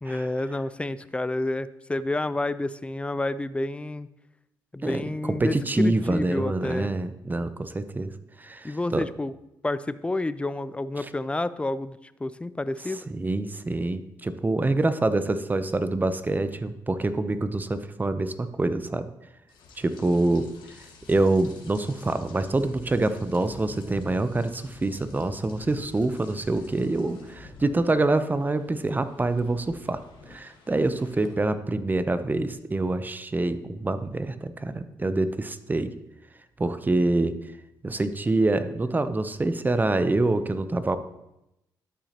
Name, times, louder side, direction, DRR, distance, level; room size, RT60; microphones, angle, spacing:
voice 1, 0.0-4.1 4.7-6.9 8.6-9.3 9.6-13.0, left 2 dB, 15° left, 15 dB, 0.4 m, -29 dB
voice 2, 4.8-8.1 8.4-9.1 11.0-11.1 13.1-19.1 19.8-20.5 21.1-30.0 30.3-35.9 36.6-37.3 37.8-41.0, right 2 dB, 20° right, 12 dB, 0.6 m, -26 dB
Rain, 19.5-31.3, left 3 dB, 85° left, 1.3 m, -49 dB
12.5 x 5.9 x 2.9 m, 0.88 s
supercardioid pair, 65°, 8 cm